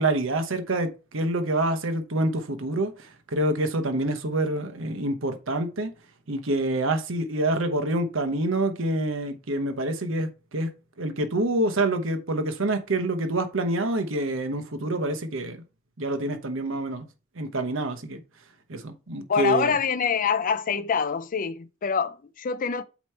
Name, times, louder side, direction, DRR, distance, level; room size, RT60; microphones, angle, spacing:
voice 1, 0.0-5.9 6.3-10.7 11.0-15.6 16.0-17.1 17.4-18.2 18.7-19.7, right 2 dB, 65° right, 1.0 m, -27 dB
voice 2, 19.3-22.8, left 6 dB, 40° left, 0.4 m, -25 dB
8.2 x 3.1 x 4.4 m
head